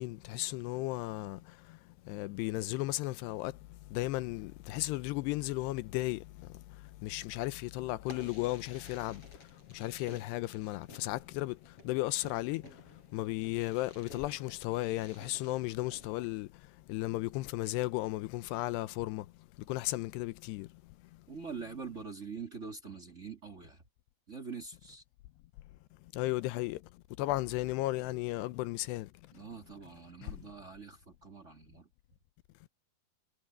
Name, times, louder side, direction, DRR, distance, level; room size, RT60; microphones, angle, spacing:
voice 1, 0.0-1.4 2.1-3.5 3.9-6.2 7.0-9.2 9.7-11.6 11.9-12.6 13.1-16.5 16.9-19.3 19.7-20.7 26.1-26.8 27.2-29.1, left 18 dB, 85° left, 2.8 m, -34 dB
Fireworks, 8.0-16.4, left 2 dB, 35° left, 7.9 m, -55 dB
voice 2, 21.3-23.8 24.3-25.0 29.3-31.9, right 5 dB, 25° right, 1.6 m, -44 dB
omnidirectional pair, 4.9 m